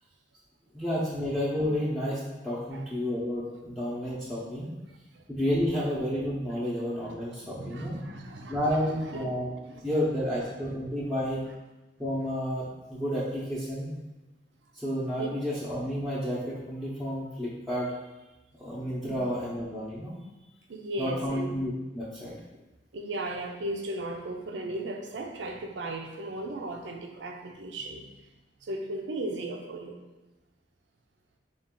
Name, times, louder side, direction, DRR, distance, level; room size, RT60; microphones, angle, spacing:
voice 1, 0.7-4.7 5.3-8.0 8.5-9.6 9.8-11.4 12.0-13.9 14.7-17.9 18.6-20.1 21.0-22.4, equal, ahead, -9 dB, 0.7 m, -31 dB
voice 2, 7.4-8.6 9.1-9.3 9.6-9.8 15.2-15.3 19.0-19.2 20.7-21.5 22.9-28.1 28.6-30.0, right 2 dB, 90° right, 3 dB, 0.5 m, -36 dB
4.7 x 2.4 x 3.6 m, 1.1 s
head